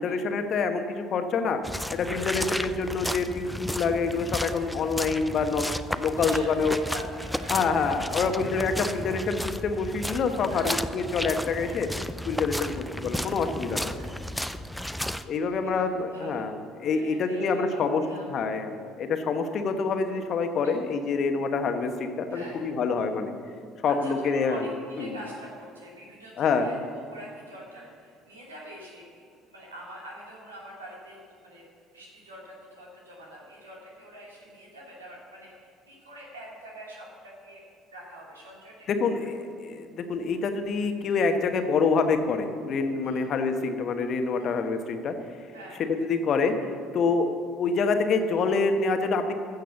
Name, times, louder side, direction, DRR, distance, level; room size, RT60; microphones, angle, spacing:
voice 1, 0.0-1.6 1.9-6.8 7.5-11.9 12.2-12.7 13.0-13.9 15.2-16.5 16.8-18.0 18.3-18.7 19.0-23.3 23.8-24.6 25.0-25.1 26.4-26.7 38.9-45.1 45.9-46.5 46.9-47.3 47.6-49.3, left 4 dB, 50° left, 6 dB, 1.2 m, -26 dB
sound 1, 1.6-15.2, equal, ahead, 0.5 m, -33 dB
voice 2, 4.8-5.1 6.0-8.4 10.5-10.8 12.6-12.8 13.9-14.6 15.5-16.5 16.9-18.3 20.6-20.8 22.3-22.6 23.9-31.6 31.9-37.6 37.9-38.9 39.2-39.3 43.0-43.3 44.4-44.6 45.5-45.8, equal, 85° right, -3 dB, 2.8 m, -45 dB
15.0 x 6.6 x 7.0 m, 2.2 s
figure-of-eight pair, 55°, 0 cm